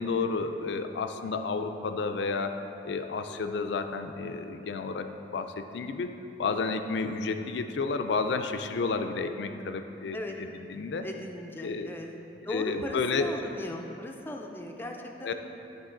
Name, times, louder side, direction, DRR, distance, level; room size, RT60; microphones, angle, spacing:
voice 1, 0.0-2.6 2.8-6.1 6.4-11.0 11.6-11.9 12.5-13.3 15.2-15.3, left 4 dB, 75° left, 7 dB, 0.4 m, -31 dB
voice 2, 11.0-12.2 12.5-15.3, left 1 dB, 10° left, 2 dB, 0.5 m, -37 dB
11.5 x 3.9 x 3.8 m, 2.9 s
head